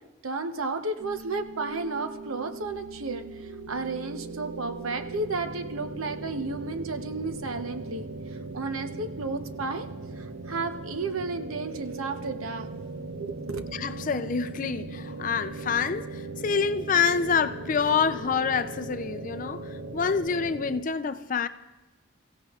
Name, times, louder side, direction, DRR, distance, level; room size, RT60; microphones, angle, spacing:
voice 1, 0.2-3.2 3.7-8.1 8.5-9.9 10.2-12.7 13.1-13.6, right 3 dB, 90° right, 0.9 m, -32 dB
sound 1, 1.0-20.8, right 3 dB, 60° right, 0.7 m, -39 dB
voice 2, 13.7-21.5, left 6 dB, 40° left, 0.4 m, -27 dB
28.5 x 15.5 x 2.4 m
head